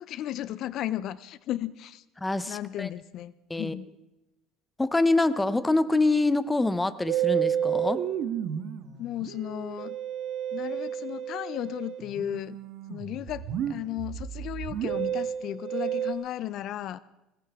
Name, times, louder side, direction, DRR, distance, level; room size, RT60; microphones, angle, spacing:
voice 1, 0.0-2.0 2.5-3.9 9.0-10.0 10.5-12.6 12.9-17.0, left 12 dB, 55° left, 0.5 m, -35 dB
voice 2, 2.2-2.9 3.5-3.8 4.8-8.1, left 2 dB, 10° left, 0.7 m, -25 dB
Musical instrument, 7.1-16.1, right 10 dB, 55° right, 1.4 m, -31 dB
21.0 x 17.5 x 3.6 m
cardioid pair, 135°, 0 cm